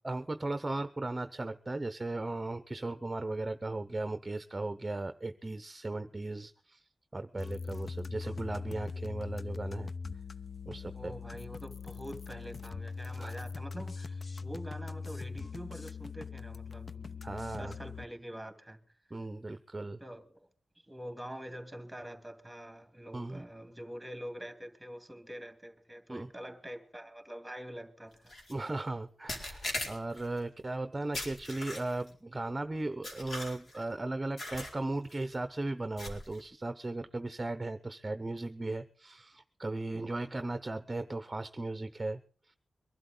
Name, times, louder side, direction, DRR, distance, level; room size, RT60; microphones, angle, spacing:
voice 1, 0.0-6.8 7.1-9.9 10.7-11.1 13.2-13.3 17.2-17.7 19.1-20.0 23.1-23.4 26.1-26.3 28.5-42.2 42.5-42.6, right 2 dB, 25° right, 0.8 m, -37 dB
sound 1, 7.4-18.0, left 4 dB, 50° left, 0.8 m, -41 dB
voice 2, 10.9-17.3 17.6-18.8 20.0-20.5 20.9-28.3 39.9-40.6, equal, 5° right, 2.6 m, -45 dB
sound 2, 28.3-28.5 29.3-30.3 31.1-32.1 33.0-33.8 34.4-34.8 35.1-35.3 36.0-36.4, left 1 dB, 65° left, 4.3 m, -40 dB
23.0 x 12.0 x 3.9 m
wide cardioid pair, 80°, 0 cm